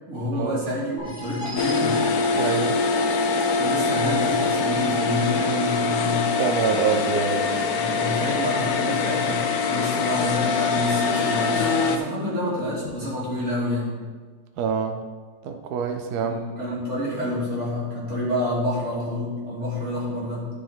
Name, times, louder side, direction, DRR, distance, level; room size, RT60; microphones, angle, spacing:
voice 1, 0.1-2.0 3.6-6.3 7.7-14.0 16.2-20.5, left 1 dB, 40° right, -8 dB, 3.0 m, -28 dB
sound 1, 1.0-6.5, left 1 dB, 35° left, 2.6 m, -37 dB
sound 2, 1.6-12.0, left 4 dB, 70° left, 1.0 m, -24 dB
voice 2, 2.3-2.8 6.4-7.6 14.6-15.0 15.4-16.4, right 6 dB, 70° right, 5 dB, 1.0 m, -26 dB
11.0 x 5.0 x 3.8 m, 1.5 s
omnidirectional pair, 2.0 m